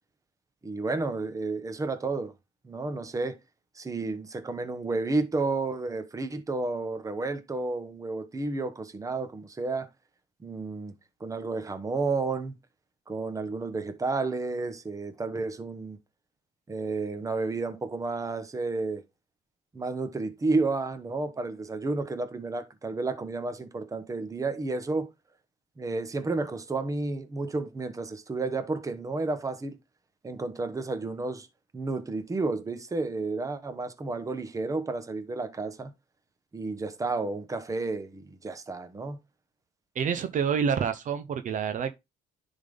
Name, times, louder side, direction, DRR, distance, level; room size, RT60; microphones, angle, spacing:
voice 1, 0.6-2.3 2.6-3.4 3.8-9.9 10.4-10.9 11.2-12.5 13.1-16.0 16.7-19.0 19.7-25.1 25.8-29.8 30.2-31.5 31.7-35.9 36.5-39.2, right 3 dB, 20° right, 1.0 m, -31 dB
voice 2, 40.0-41.9, right 7 dB, 50° right, 0.8 m, -28 dB
10.0 x 3.7 x 3.8 m
cardioid pair, 110°, 17 cm